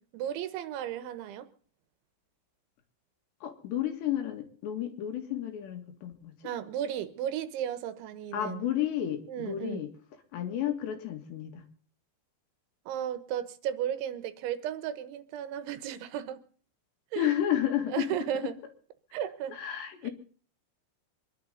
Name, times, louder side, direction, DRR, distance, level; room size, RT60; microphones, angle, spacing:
voice 1, 0.0-1.5 6.4-8.7 9.3-9.8 12.9-16.4 17.1-17.3 17.9-18.6 19.1-19.6, right 10 dB, 90° right, 3.6 m, -34 dB
voice 2, 3.4-6.3 8.3-9.9 10.3-11.6 17.2-18.1 19.5-20.1, left 11 dB, 75° left, 4.0 m, -31 dB
25.5 x 11.5 x 3.9 m
omnidirectional pair, 5.2 m